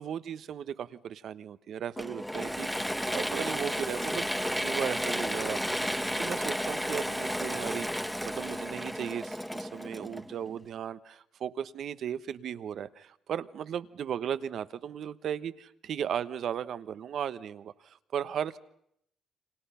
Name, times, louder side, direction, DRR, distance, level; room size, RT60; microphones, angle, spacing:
voice 1, 0.0-4.3 4.6-18.6, right 9 dB, 65° right, 14 dB, 1.1 m, -36 dB
Mechanisms / Drill, 2.0-10.6, equal, ahead, 1.0 m, -33 dB
29.0 x 25.5 x 5.7 m, 0.74 s
cardioid pair, 90°, 0 cm